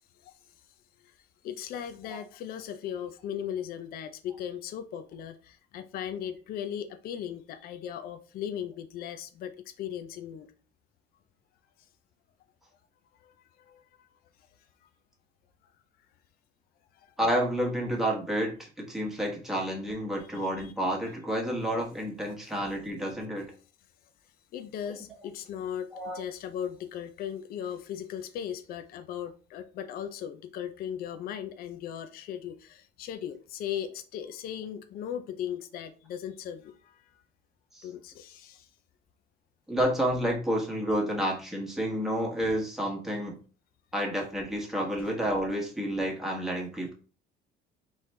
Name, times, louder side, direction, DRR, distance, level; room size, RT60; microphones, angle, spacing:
voice 1, 1.4-9.5 9.8-10.5 13.7-13.8 20.4-20.7 24.5-36.7 37.8-38.7, left 9 dB, 55° left, 0.5 m, -37 dB
voice 2, 17.2-23.5 25.9-26.2 39.7-43.4 43.9-46.9, equal, ahead, 1.2 m, -30 dB
4.1 x 3.2 x 3.3 m
cardioid pair, 145°, 19 cm